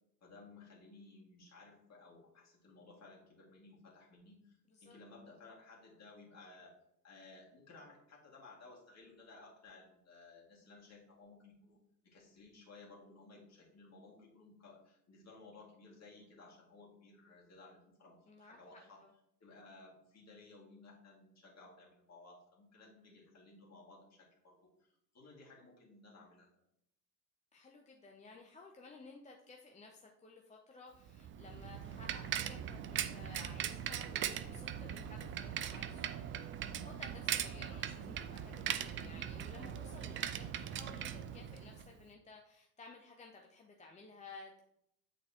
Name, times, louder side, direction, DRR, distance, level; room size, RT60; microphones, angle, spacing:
voice 1, 0.2-6.8 7.0-11.8 12.0-19.0 19.4-26.6 40.5-40.6, left 3 dB, 30° left, -3 dB, 2.2 m, -58 dB
voice 2, 18.3-19.1 27.5-44.6, left 3 dB, 15° left, 1 dB, 0.6 m, -56 dB
Bicycle, 31.1-42.0, right 9 dB, 25° right, 0.4 m, -40 dB
8.5 x 4.0 x 2.9 m, 0.77 s
hypercardioid pair, 70°, 49 cm